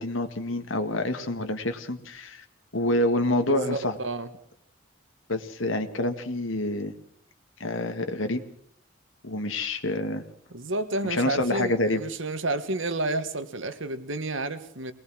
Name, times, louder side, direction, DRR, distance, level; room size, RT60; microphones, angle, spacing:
voice 1, 0.0-2.4 2.7-4.0 5.3-6.9 7.6-8.4 9.2-10.2 11.0-12.0, left 1 dB, 85° left, 2.0 m, -27 dB
voice 2, 3.5-4.3 10.5-14.9, right 2 dB, 70° right, 1.7 m, -30 dB
23.0 x 19.5 x 6.3 m
head